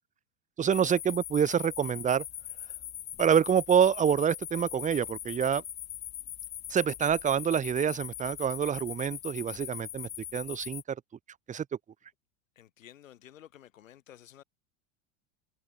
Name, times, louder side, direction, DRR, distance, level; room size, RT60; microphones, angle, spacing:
voice 1, 0.6-2.2 3.2-5.6 6.7-11.0 11.5-11.6, right 8 dB, 20° right, 0.8 m, -27 dB
sound 1, 0.7-10.8, left 11 dB, 20° left, 0.3 m, -41 dB
voice 2, 12.6-14.4, left 11 dB, 90° left, 4.4 m, -53 dB
hypercardioid pair, 105°, 38 cm